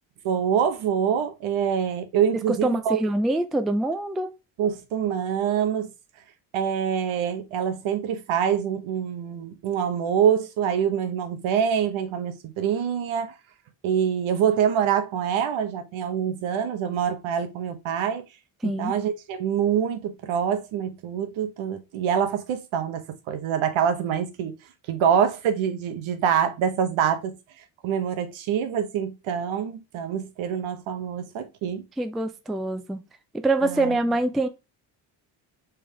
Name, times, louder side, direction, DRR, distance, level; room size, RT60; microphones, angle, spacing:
voice 1, 0.2-3.0 4.6-5.9 6.5-13.4 13.8-18.2 18.6-24.5 24.9-27.3 27.8-31.9 33.6-34.0, right 8 dB, 70° right, 1.0 m, -25 dB
voice 2, 2.6-4.3 18.6-18.9 32.0-33.0 33.3-34.5, right 2 dB, ahead, 0.3 m, -25 dB
3.5 x 3.4 x 3.2 m
supercardioid pair, 70°, 50 cm